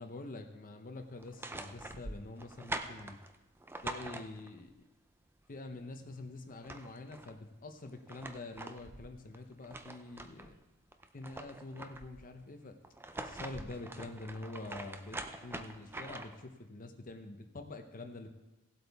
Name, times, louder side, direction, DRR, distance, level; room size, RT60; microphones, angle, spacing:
voice 1, 0.0-3.2 3.8-4.8 5.5-10.5 11.1-12.8 13.2-18.3, left 2 dB, 40° left, 5 dB, 0.7 m, -46 dB
sound 1, 1.2-4.7 6.2-6.3 6.5-7.3 7.9-10.5 10.9-12.2 12.8-16.5, right 2 dB, 10° right, 0.5 m, -44 dB
17.0 x 8.0 x 3.5 m, 1.0 s
head